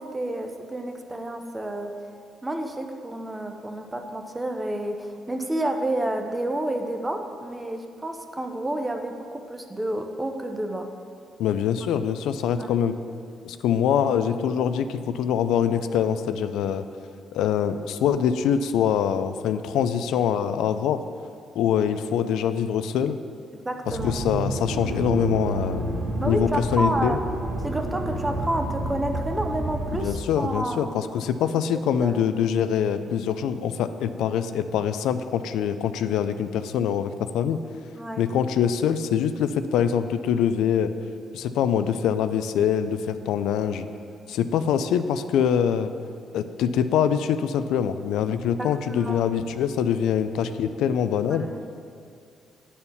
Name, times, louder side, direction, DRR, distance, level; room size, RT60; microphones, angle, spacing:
voice 1, 0.0-2.0 2.4-10.9 12.0-12.1 12.6-12.7 23.5-24.3 26.2-27.2 27.6-31.0 32.0-32.1 37.9-38.3 48.6-49.2 51.3-51.8, right 1 dB, 15° right, 5 dB, 0.8 m, -30 dB
voice 2, 11.4-12.9 13.4-16.8 17.3-21.0 21.6-23.2 24.0-25.8 26.3-27.2 30.0-37.6 38.2-40.9 41.3-43.9 44.3-45.9 46.3-51.5, left 8 dB, 85° left, 10 dB, 0.3 m, -24 dB
Accelerating revving vroom, 23.8-30.1, right 2 dB, 90° right, 1.1 m, -30 dB
8.7 x 4.2 x 7.0 m, 2.3 s
cardioid pair, 90°, 0 cm